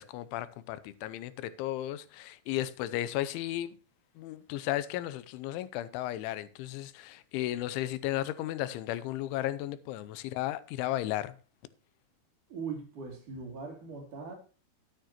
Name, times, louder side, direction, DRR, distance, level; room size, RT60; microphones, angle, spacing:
voice 1, 0.0-3.8 4.2-11.4, left 14 dB, 90° left, 3.2 m, -34 dB
voice 2, 12.5-14.3, right 5 dB, 45° right, 3.8 m, -40 dB
13.0 x 9.2 x 3.0 m
omnidirectional pair, 5.4 m